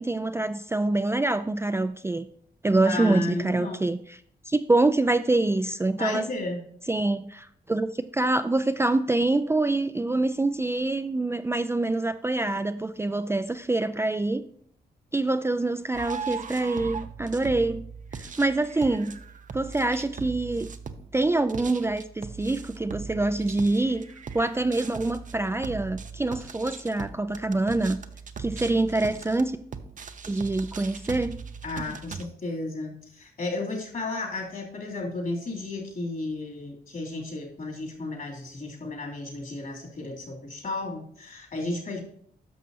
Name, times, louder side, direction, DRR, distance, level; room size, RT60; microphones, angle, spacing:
voice 1, 0.0-2.3 2.6-4.2 4.5-6.3 6.9-14.4 15.1-17.8 18.1-19.2 19.5-20.7 21.1-24.0 24.3-28.0 28.4-29.6 30.3-31.4, right 2 dB, 15° right, 9 dB, 0.4 m, -25 dB
voice 2, 2.8-3.8 5.9-6.6 31.6-42.0, left 2 dB, 55° left, -1 dB, 2.9 m, -33 dB
sound 1, 15.9-32.3, right 5 dB, 50° right, 0.7 m, -39 dB
11.0 x 6.4 x 2.8 m, 0.63 s
cardioid pair, 70°, 17 cm